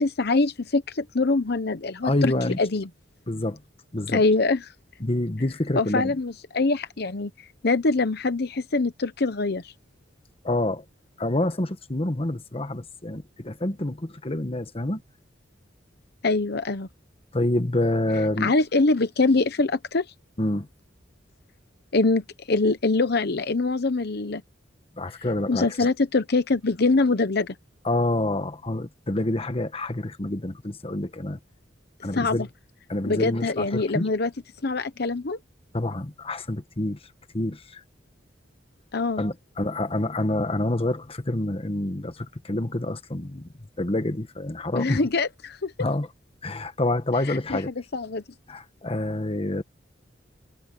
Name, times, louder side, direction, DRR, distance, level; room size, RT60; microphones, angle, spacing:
voice 1, 0.0-2.3 2.6-2.9 4.1-4.6 5.7-7.3 7.6-9.7 16.2-16.9 18.4-20.1 21.9-24.4 25.5-27.5 32.1-32.5 33.1-34.3 34.6-35.4 38.9-39.2 44.7-45.7 47.3-47.6 47.9-48.2, left 3 dB, 60° left, 0.9 m, -24 dB
voice 2, 2.0-2.6 3.3-3.6 3.9-4.2 5.0-6.1 10.4-10.8 11.2-15.0 17.3-18.5 20.4-20.7 25.0-25.9 27.8-31.4 32.0-32.5 32.9-34.1 35.7-37.0 37.3-37.8 39.2-45.0 45.8-46.1 46.4-47.7 48.5-49.6, left 1 dB, 30° left, 1.3 m, -27 dB
head